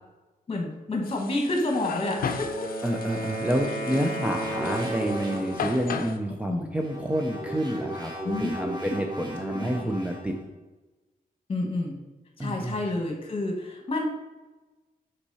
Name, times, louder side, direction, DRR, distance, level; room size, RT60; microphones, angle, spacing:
voice 1, 0.5-2.7 4.0-4.3 6.5-6.7 8.2-8.5 8.8-8.9 9.5-9.9 11.5-11.9 12.4-14.1, left 2 dB, 40° left, 0 dB, 1.5 m, -29 dB
sound 1, 1.0-6.2, left 5 dB, 75° left, 0.5 m, -36 dB
Wind instrument woodwind instrument, 1.8-5.6, right 1 dB, 85° right, 2.2 m, -34 dB
voice 2, 2.8-8.1 8.4-10.4 12.4-12.8, equal, 10° right, 0 dB, 0.5 m, -28 dB
sound 2, 4.4-6.0 6.7-10.4, right 1 dB, 30° right, 1.1 m, -37 dB
5.9 x 4.6 x 4.1 m, 1.2 s
wide cardioid pair, 130°, 15 cm